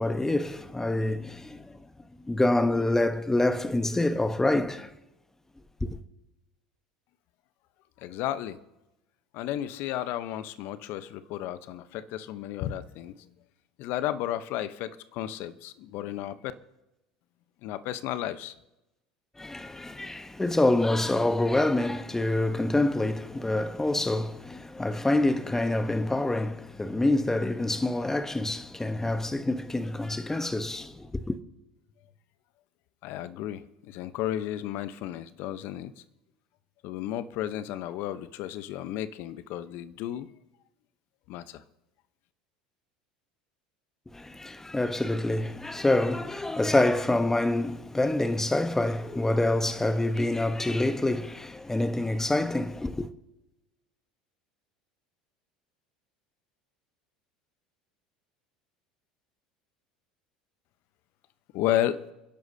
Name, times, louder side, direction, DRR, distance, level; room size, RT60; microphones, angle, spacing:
voice 1, 0.0-1.9 2.2-4.9 5.8-6.0 19.4-31.4 44.1-53.1, left 2 dB, 10° left, 1.1 m, -26 dB
voice 2, 8.0-8.6 9.3-13.3 13.8-16.4 17.6-18.5 33.0-35.9 36.8-40.3 41.3-41.6 61.5-62.0, left 12 dB, 60° left, 0.9 m, -33 dB
28.5 x 11.0 x 2.8 m
hypercardioid pair, 75°, 4 cm